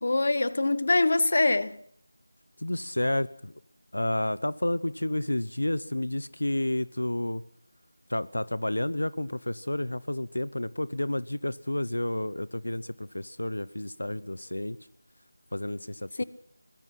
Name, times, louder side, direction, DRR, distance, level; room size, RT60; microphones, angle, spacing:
voice 1, 0.0-1.8 16.2-16.3, left 2 dB, 50° left, 1.1 m, -24 dB
voice 2, 2.6-3.5 3.9-7.4 8.1-14.8 15.5-16.2, left 1 dB, 85° left, 0.9 m, -30 dB
23.0 x 20.0 x 6.0 m
figure-of-eight pair, 170°, 0 cm